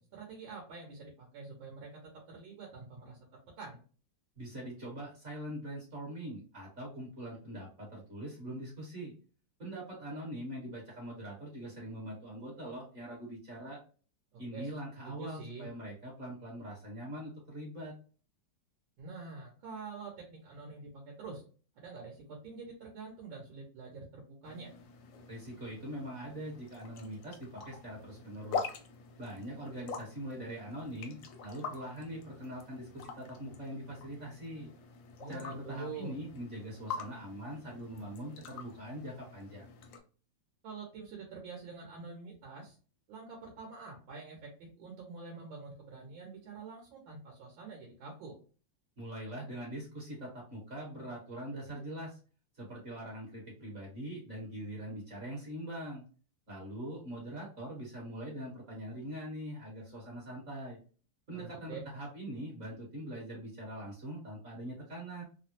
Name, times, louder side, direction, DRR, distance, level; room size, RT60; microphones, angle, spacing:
voice 1, 0.0-3.2 3.6-3.8 14.3-14.7 15.0-15.7 19.0-21.4 21.8-24.7 35.2-36.1 40.6-42.8 43.1-48.4 61.3-61.8, right 4 dB, 80° right, -1 dB, 1.6 m, -46 dB
voice 2, 4.4-9.1 9.6-13.8 14.4-17.9 25.3-28.7 29.2-34.7 35.3-39.7 49.0-52.2 52.6-56.0 56.5-60.8 61.3-65.2, right 1 dB, 45° right, -3 dB, 1.2 m, -43 dB
sound 1, 24.4-40.0, left 5 dB, 70° left, 0.9 m, -45 dB
3.5 x 2.1 x 2.7 m, 0.39 s
omnidirectional pair, 2.1 m